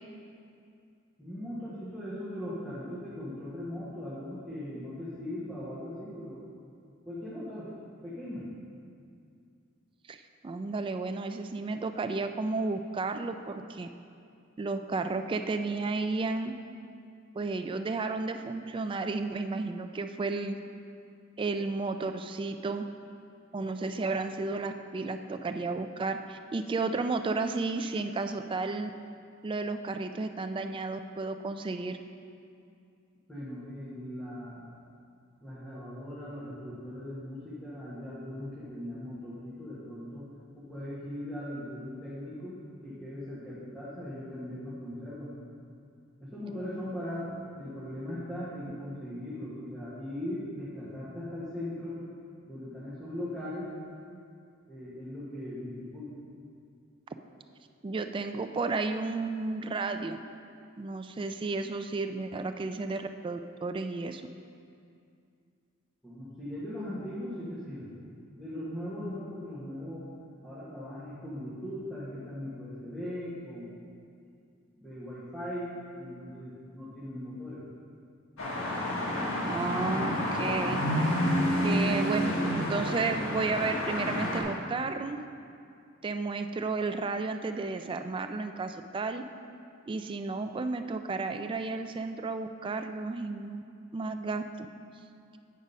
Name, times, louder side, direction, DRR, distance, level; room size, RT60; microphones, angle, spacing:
voice 1, 1.2-6.4 7.0-7.7 8.0-8.5 33.3-34.8 35.4-40.3 40.5-45.4 46.2-52.0 52.5-53.7 54.7-56.1 66.0-67.9 68.4-70.1 70.4-73.8 74.8-77.6, left 1 dB, 5° left, -11 dB, 1.5 m, -39 dB
voice 2, 10.4-13.9 14.6-16.5 17.4-20.6 21.4-22.9 23.5-28.9 29.4-32.0 57.8-60.2 60.8-64.2 79.5-80.8 81.6-85.2 86.0-89.2 89.9-93.6 93.9-94.4, right 3 dB, 25° right, 8 dB, 0.3 m, -32 dB
sound 1, 78.4-84.4, equal, 80° left, 1.6 m, -29 dB
8.7 x 5.1 x 5.4 m, 2.4 s
head